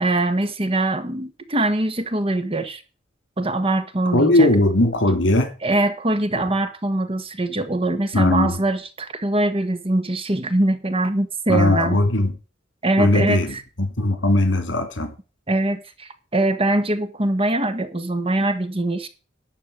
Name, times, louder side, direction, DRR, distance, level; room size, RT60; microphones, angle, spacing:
voice 1, 0.0-2.8 3.4-4.5 5.6-12.0 12.8-13.6 15.5-19.1, right 2 dB, 30° right, 1.3 m, -22 dB
voice 2, 4.1-5.5 6.4-6.5 8.1-8.6 11.5-12.3 13.0-15.1, left 1 dB, 70° left, 2.7 m, -19 dB
12.0 x 4.7 x 8.5 m
head